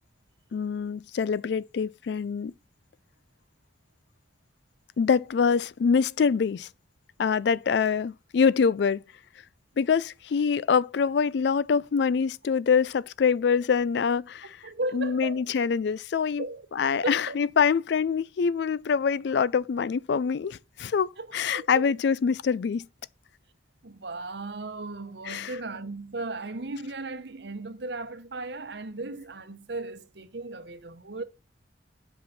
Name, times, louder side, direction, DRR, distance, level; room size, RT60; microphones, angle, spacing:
voice 1, 0.5-2.5 5.0-6.7 7.2-9.0 9.8-14.6 14.9-16.4 16.7-22.9 25.3-25.6, left 6 dB, 60° left, 0.3 m, -25 dB
voice 2, 14.6-15.4 16.4-16.7 17.0-17.4 21.2-21.9 23.8-31.2, right 2 dB, 60° right, 0.9 m, -36 dB
7.8 x 5.5 x 5.8 m
head